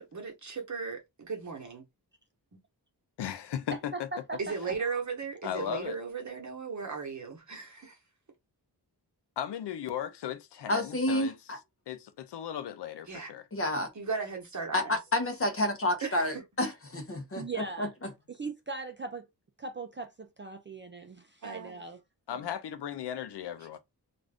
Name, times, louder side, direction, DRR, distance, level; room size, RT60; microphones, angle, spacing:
voice 1, 0.0-1.8 2.5-2.6 4.4-8.0 13.1-13.3 13.9-15.0 16.0-16.4 21.4-21.8 23.6-23.7, right 5 dB, 45° right, 1.0 m, -37 dB
voice 2, 3.2-4.1 5.4-6.0 9.4-11.4 11.9-13.4 22.3-23.8, left 9 dB, 80° left, 0.5 m, -36 dB
voice 3, 10.7-11.6 13.5-13.9 14.7-18.1, left 1 dB, 35° left, 0.7 m, -30 dB
voice 4, 17.4-17.9 18.3-19.2 19.6-22.0 22.3-22.5, right 4 dB, 30° right, 0.4 m, -39 dB
2.5 x 2.4 x 3.4 m
wide cardioid pair, 110°, 41 cm